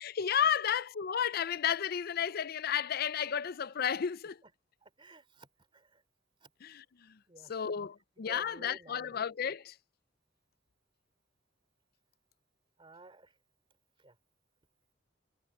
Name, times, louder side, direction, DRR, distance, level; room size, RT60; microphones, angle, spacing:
voice 1, 0.0-4.4 6.6-7.2 7.5-9.7, left 8 dB, 55° left, 0.5 m, -32 dB
voice 2, 4.8-6.0 6.4-6.5 7.3-7.7 8.2-9.2 12.8-13.4 14.0-14.2, right 2 dB, 30° right, 3.1 m, -54 dB
head